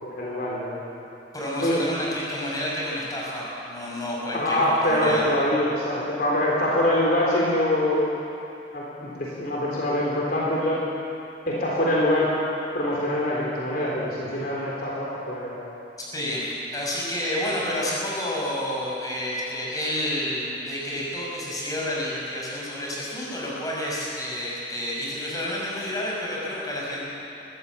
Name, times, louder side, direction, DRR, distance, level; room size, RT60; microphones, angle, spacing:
voice 1, 0.0-0.8 1.6-1.8 4.3-8.1 8.7-10.8 11.5-12.3 12.7-15.7, left 1 dB, 55° left, -5 dB, 3.7 m, -24 dB
voice 2, 1.3-5.3 16.1-27.0, left 1 dB, 20° left, -5 dB, 5.9 m, -30 dB
21.0 x 15.5 x 8.3 m, 2.8 s
head